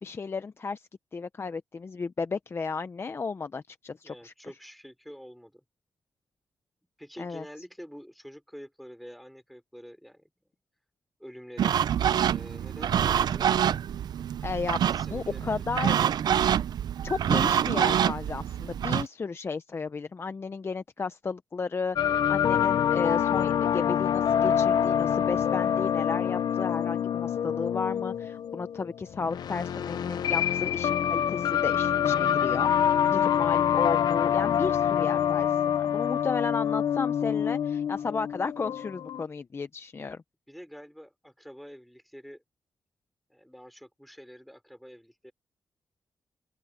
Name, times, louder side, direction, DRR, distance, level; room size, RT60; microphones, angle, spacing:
voice 1, 0.0-4.3 7.2-7.4 12.8-13.2 14.4-14.8 15.1-15.9 17.0-40.2, left 4 dB, 35° left, 0.7 m, -34 dB
voice 2, 4.0-5.6 7.0-10.3 11.2-11.7 12.3-13.5 14.8-16.1 40.5-42.4 43.3-45.3, equal, ahead, 5.1 m, -47 dB
sound 1, 11.6-19.1, right 9 dB, 80° right, 0.5 m, -26 dB
sound 2, 22.0-39.2, left 9 dB, 80° left, 0.8 m, -26 dB
open air
wide cardioid pair, 110°, 7 cm